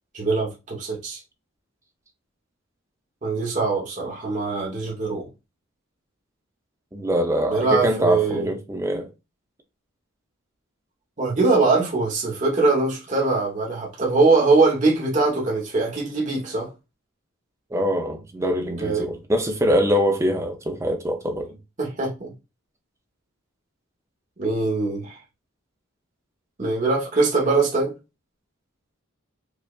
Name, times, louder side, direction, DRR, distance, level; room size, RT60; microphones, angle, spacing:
voice 1, 0.1-1.2 3.2-5.3 7.5-8.4 11.2-16.7 18.8-19.1 21.8-22.3 24.4-25.2 26.6-27.9, right 3 dB, 35° right, 0.9 m, -22 dB
voice 2, 6.9-9.1 17.7-21.6, equal, 15° right, 0.5 m, -23 dB
5.0 x 2.4 x 2.3 m
head